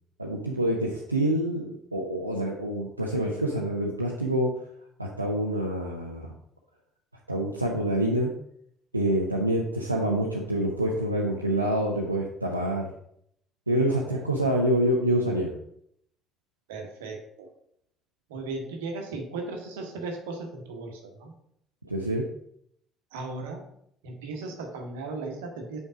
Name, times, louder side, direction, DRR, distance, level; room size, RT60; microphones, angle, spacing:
voice 1, 0.2-4.5 5.0-6.3 7.3-8.3 8.9-12.9 13.7-15.5 21.9-22.2, right 1 dB, 85° right, -2 dB, 0.6 m, -26 dB
voice 2, 13.9-14.3 16.7-17.5 18.3-21.3 23.1-23.6 24.0-25.8, right 3 dB, 70° right, 3 dB, 1.1 m, -36 dB
5.5 x 4.5 x 4.9 m, 0.72 s
figure-of-eight pair, 50°, 0 cm